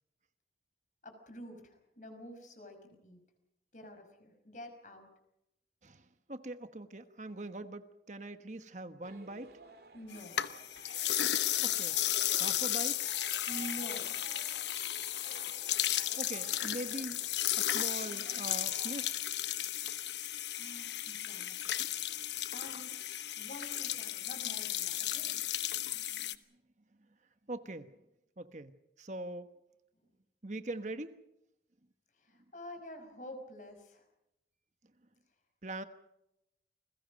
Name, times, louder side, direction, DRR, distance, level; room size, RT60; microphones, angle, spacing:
voice 1, 1.0-3.2 3.7-5.1 9.9-10.4 13.5-14.2 20.5-22.0 22.5-23.0 23.4-25.3 32.1-34.1, equal, 45° left, 6 dB, 5.5 m, -48 dB
voice 2, 5.8-9.5 11.6-12.0 12.3-13.0 16.2-17.2 17.5-19.2 25.8-26.4 27.5-28.0 28.4-28.7 29.0-29.5 30.4-31.2 35.6-35.8, right 2 dB, 40° right, 9 dB, 1.1 m, -42 dB
sound 1, 9.0-18.9, right 2 dB, 60° right, 2.9 m, -54 dB
sound 2, 10.1-26.3, left 12 dB, 85° left, 1.1 m, -34 dB
29.5 x 21.5 x 5.2 m, 0.86 s
head